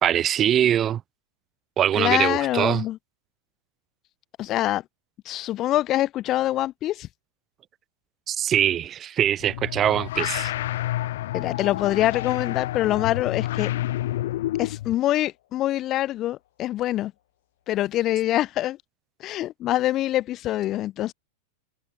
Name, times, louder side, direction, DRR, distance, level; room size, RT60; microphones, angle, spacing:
voice 1, 0.0-1.0 1.8-2.8 8.3-10.5, right 10 dB, 30° right, 2.0 m, -22 dB
voice 2, 2.0-3.0 4.4-4.8 5.3-7.1 11.3-13.7 14.6-17.1 17.7-18.8 19.2-21.1, left 14 dB, 35° left, 2.3 m, -25 dB
sound 1, 9.4-14.9, left 14 dB, 55° left, 2.3 m, -29 dB
figure-of-eight pair, 90°, 0 cm